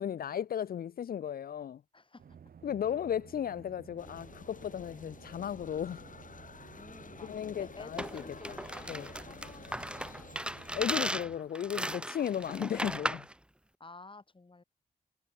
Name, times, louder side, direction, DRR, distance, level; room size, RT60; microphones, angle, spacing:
voice 1, 0.0-1.8 2.6-6.0 7.2-8.0 8.9-9.1 10.7-13.3, left 9 dB, 80° left, 0.6 m, -35 dB
voice 2, 1.9-2.4 6.7-10.4 13.8-14.6, left 3 dB, 35° left, 3.3 m, -52 dB
sound 1, 2.2-11.4, right 7 dB, 80° right, 2.0 m, -54 dB
sound 2, 4.0-11.0, left 5 dB, 60° left, 7.3 m, -51 dB
sound 3, 8.0-13.3, right 1 dB, 5° right, 1.3 m, -36 dB
cardioid pair, 60°, 15 cm